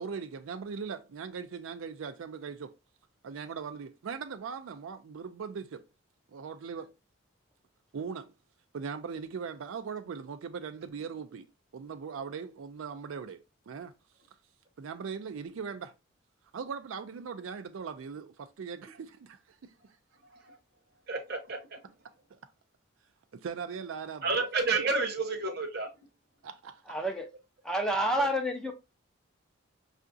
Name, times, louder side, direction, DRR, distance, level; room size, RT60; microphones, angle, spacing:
voice 1, 0.0-2.7 3.2-5.8 6.3-6.9 7.9-8.3 8.7-11.5 11.7-13.9 14.8-15.9 16.5-19.7 22.3-22.4 23.3-24.4 26.4-27.0, right 6 dB, 75° right, 0.4 m, -40 dB
voice 2, 21.1-21.8 24.2-25.9, right 3 dB, 50° right, 0.8 m, -30 dB
voice 3, 26.9-27.3 27.6-28.7, right 1 dB, 5° left, 0.4 m, -29 dB
5.5 x 2.5 x 2.5 m
head